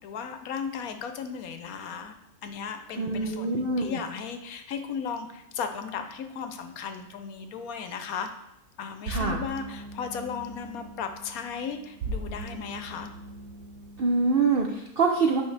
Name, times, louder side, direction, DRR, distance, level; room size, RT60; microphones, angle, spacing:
voice 1, 0.0-2.2 2.4-8.3 8.8-13.1, left 6 dB, 70° left, 7 dB, 1.0 m, -36 dB
voice 2, 3.0-4.0 9.1-9.4 14.0-15.4, right 4 dB, 60° right, 0 dB, 0.6 m, -25 dB
sound 1, 9.1-14.7, right 2 dB, 85° right, 1.4 m, -39 dB
8.5 x 5.1 x 3.3 m, 0.85 s
omnidirectional pair, 1.7 m